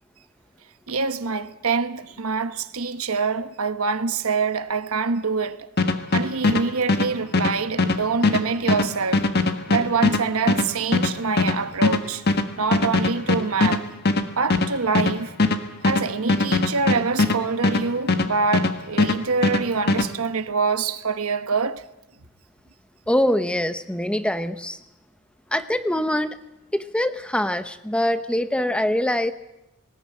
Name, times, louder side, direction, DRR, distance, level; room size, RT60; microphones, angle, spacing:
voice 1, 0.9-5.7 6.1-9.3 9.7-12.2 12.6-13.9 14.4-15.3 15.8-21.8, right 4 dB, 70° right, 1.1 m, -25 dB
sound 1, 5.8-18.7 19.0-20.1, left 3 dB, 45° left, 1.5 m, -21 dB
voice 2, 23.1-24.8 25.5-26.4 26.7-29.3, left 1 dB, 5° left, 0.7 m, -23 dB
19.5 x 17.0 x 9.3 m
head